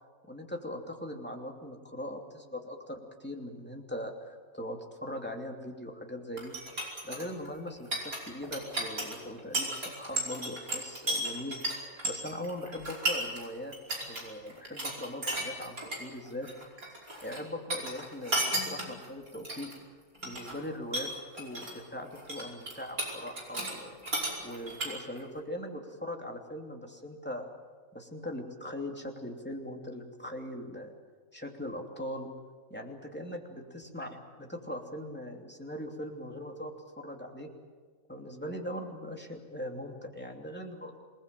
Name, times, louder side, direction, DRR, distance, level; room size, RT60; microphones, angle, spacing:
voice 1, 0.2-6.6 7.0-13.7 14.1-16.5 17.2-19.7 20.2-24.0 24.4-27.5 27.9-30.9 31.3-32.3 32.7-34.1 34.4-37.5 38.1-41.0, left 1 dB, 5° left, 1 dB, 2.9 m, -40 dB
sound 1, 6.4-13.5 13.7-14.2 14.5-16.0 16.3-17.4 17.7-19.8 20.1-20.6 20.9-21.8 22.1-23.7 24.0-25.2, right 1 dB, 85° right, 5.7 m, -34 dB
27.0 x 20.0 x 7.7 m, 1.5 s
omnidirectional pair, 1.5 m